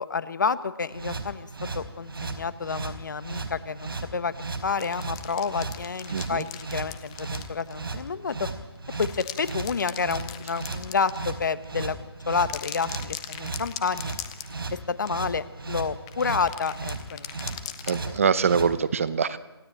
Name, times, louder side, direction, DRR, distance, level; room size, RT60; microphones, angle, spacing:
voice 1, 0.0-1.5 1.7-4.3 4.6-8.5 9.0-12.0 12.3-14.1 14.9-17.5 17.8-18.0, left 5 dB, 50° left, 14 dB, 1.4 m, -29 dB
sound 1, 0.9-18.7, right 3 dB, 60° right, 4.4 m, -35 dB
sound 2, 4.5-8.1 8.8-11.6 12.3-14.8 15.1-15.2 16.1-18.4, left 11 dB, 10° left, 0.8 m, -40 dB
voice 2, 6.1-6.4 17.9-19.4, right 6 dB, 30° right, 14 dB, 0.9 m, -24 dB
27.0 x 17.5 x 8.9 m, 1.1 s
hypercardioid pair, 170°, 13 cm